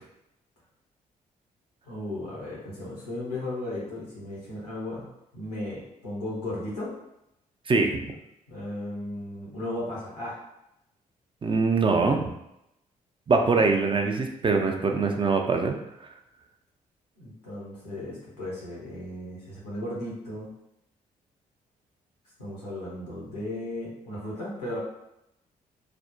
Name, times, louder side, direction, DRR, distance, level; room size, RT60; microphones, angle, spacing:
voice 1, 1.8-5.1 5.3-6.9 8.5-10.4 13.5-13.6 17.2-20.5 22.4-24.8, left 1 dB, 90° left, -6 dB, 0.8 m, -35 dB
voice 2, 7.7-8.1 11.4-12.3 13.3-15.7 16.0-16.1, right 4 dB, 25° right, 3 dB, 0.5 m, -23 dB
3.3 x 2.1 x 2.5 m, 0.84 s
figure-of-eight pair, 40°, 20 cm